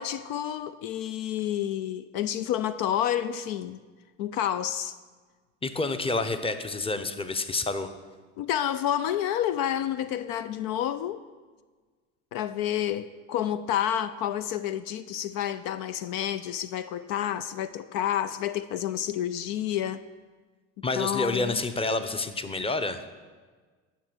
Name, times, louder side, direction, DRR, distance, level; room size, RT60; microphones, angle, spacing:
voice 1, 0.0-3.8 4.2-5.0 8.4-11.2 12.3-20.0 20.9-21.6, left 10 dB, 70° left, 0.5 m, -29 dB
voice 2, 5.6-7.9 20.8-23.0, left 3 dB, 15° left, 0.8 m, -28 dB
10.0 x 6.3 x 6.2 m
hypercardioid pair, 70°, 36 cm